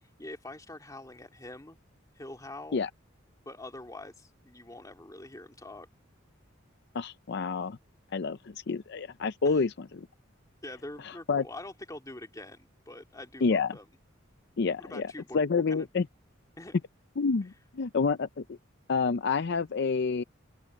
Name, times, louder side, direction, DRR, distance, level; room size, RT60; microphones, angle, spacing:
voice 1, 0.2-1.8 2.2-2.8 3.5-5.9 9.4-9.6 10.6-13.8 14.8-15.9 16.6-16.7, left 2 dB, 20° left, 2.2 m, -44 dB
voice 2, 6.9-7.8 8.1-10.1 11.0-11.4 13.4-13.8 14.6-16.1 17.2-18.6 18.9-20.2, left 4 dB, 60° left, 0.5 m, -29 dB
open air
head